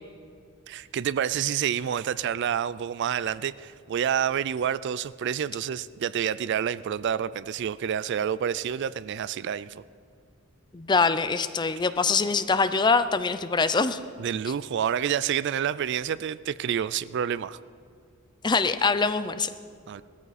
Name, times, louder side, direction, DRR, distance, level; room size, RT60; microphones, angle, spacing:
voice 1, 0.7-9.8 14.2-17.6 19.9-20.0, right 8 dB, 55° right, 17 dB, 0.3 m, -28 dB
voice 2, 10.7-14.0 18.4-19.5, left 4 dB, 20° left, 12 dB, 0.4 m, -24 dB
18.5 x 13.5 x 4.1 m, 2.2 s
head